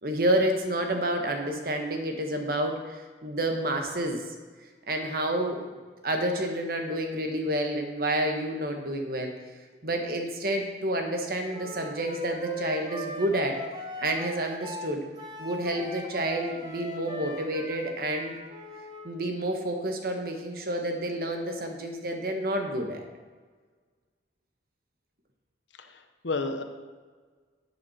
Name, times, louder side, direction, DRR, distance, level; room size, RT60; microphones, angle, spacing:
voice 1, 0.0-4.3 4.9-5.6 6.0-9.3 9.8-13.6 14.0-15.0 15.4-18.4 19.0-23.0, right 1 dB, 50° right, 3 dB, 1.4 m, -29 dB
Wind instrument woodwind instrument, 11.5-19.1, right 1 dB, 25° right, 1.1 m, -39 dB
voice 2, 25.8-26.6, left 3 dB, 85° left, 7 dB, 1.0 m, -32 dB
11.0 x 8.6 x 4.3 m, 1.4 s
head